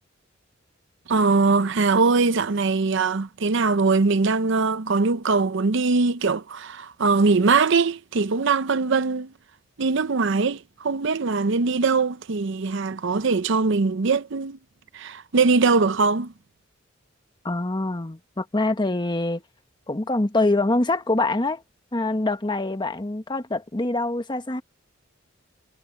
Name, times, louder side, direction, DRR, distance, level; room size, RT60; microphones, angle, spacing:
voice 1, 1.1-9.3 9.8-14.6 14.9-16.3, right 4 dB, 65° right, 0.6 m, -21 dB
voice 2, 17.4-19.4 19.9-21.6 21.9-24.6, left 2 dB, 20° left, 1.1 m, -24 dB
head